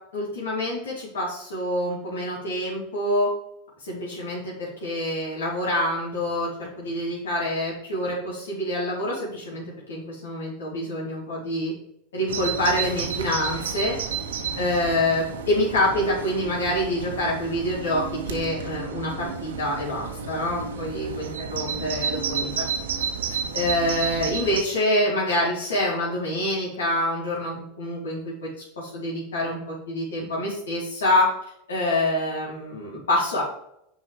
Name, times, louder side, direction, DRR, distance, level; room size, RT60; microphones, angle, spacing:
voice 1, 0.1-3.3 3.8-11.7 12.1-14.0 14.6-22.5 23.5-28.5 28.8-31.3 31.7-33.4, left 1 dB, 90° left, -5 dB, 2.9 m, -26 dB
Bird vocalization bird call bird song, 12.3-24.6, right 6 dB, 85° right, 1.0 m, -31 dB
6.2 x 4.8 x 4.8 m, 0.78 s
hypercardioid pair, 100°, 0 cm